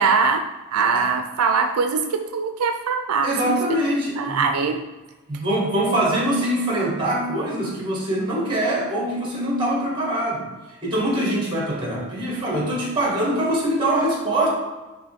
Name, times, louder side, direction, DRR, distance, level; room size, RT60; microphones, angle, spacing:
voice 1, 0.0-3.8 4.2-4.8, right 5 dB, 85° right, 6 dB, 0.5 m, -22 dB
voice 2, 3.2-4.6 5.3-10.5 10.8-14.5, right 1 dB, 25° right, -4 dB, 2.1 m, -23 dB
9.7 x 3.4 x 3.6 m, 1.2 s
head